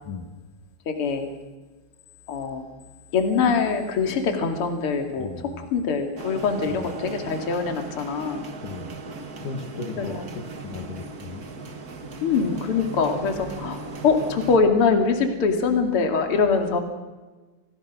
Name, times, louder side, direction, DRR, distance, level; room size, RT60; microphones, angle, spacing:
voice 1, 0.9-1.3 2.3-2.6 3.1-5.3 5.7-8.4 10.0-10.2 12.2-16.8, left 5 dB, 40° left, 5 dB, 3.0 m, -23 dB
voice 2, 5.2-5.7 6.7-6.9 8.6-8.9 9.4-11.4, left 4 dB, 65° left, 3 dB, 3.2 m, -36 dB
sound 1, 6.2-14.6, right 3 dB, 45° right, 1.2 m, -37 dB
28.0 x 17.5 x 6.3 m, 1.2 s
omnidirectional pair, 4.2 m